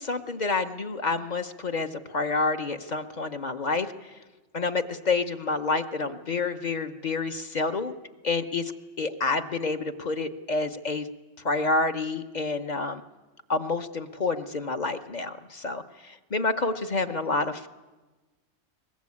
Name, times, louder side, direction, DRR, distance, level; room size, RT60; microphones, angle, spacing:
voice 1, 0.0-3.9 4.5-7.9 8.2-8.7 9.0-11.1 11.4-13.0 13.5-17.7, left 3 dB, 40° left, 8 dB, 1.0 m, -28 dB
22.0 x 20.5 x 8.5 m, 1.2 s
omnidirectional pair, 1.2 m